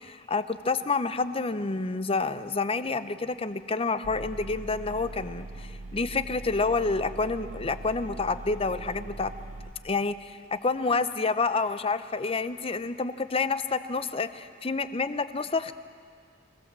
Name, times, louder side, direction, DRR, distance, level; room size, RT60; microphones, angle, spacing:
voice 1, 0.0-9.3 9.8-15.7, left 4 dB, 30° left, 12 dB, 0.7 m, -28 dB
sound 1, 4.0-9.7, right 2 dB, 40° right, 1.1 m, -41 dB
23.5 x 17.5 x 7.5 m, 2.2 s
head